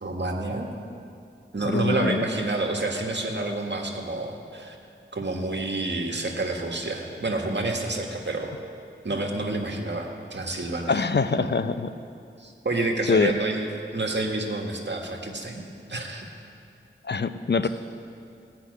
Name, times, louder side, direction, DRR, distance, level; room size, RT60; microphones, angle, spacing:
voice 1, 0.0-0.7 1.5-4.8 5.1-8.6 9.0-11.0 11.3-11.5 12.4-13.7 13.9-16.3, right 2 dB, 60° right, 1 dB, 1.7 m, -29 dB
voice 2, 1.6-2.2 10.9-11.9 13.1-13.3 17.0-17.7, left 4 dB, 55° left, 11 dB, 0.6 m, -24 dB
17.0 x 5.9 x 9.5 m, 2.5 s
wide cardioid pair, 50°, 21 cm